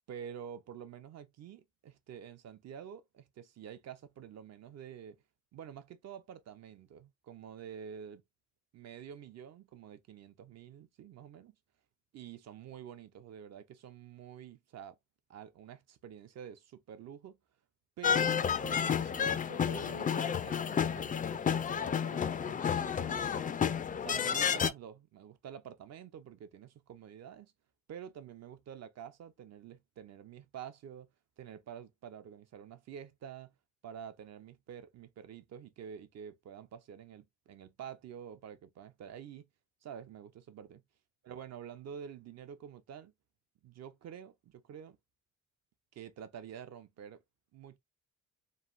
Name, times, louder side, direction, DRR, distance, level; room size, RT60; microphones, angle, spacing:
voice 1, 0.1-5.2 5.5-8.2 8.7-11.5 12.1-15.0 15.3-17.4 18.0-23.6 24.0-27.5 27.9-31.1 31.4-33.5 33.8-39.5 39.8-40.8 41.2-43.1 43.6-45.0 45.9-47.2 47.5-47.8, right 8 dB, 60° right, 0.7 m, -48 dB
sound 1, 18.0-24.7, left 7 dB, 30° left, 0.4 m, -31 dB
3.3 x 2.5 x 2.4 m
cardioid pair, 90°, 30 cm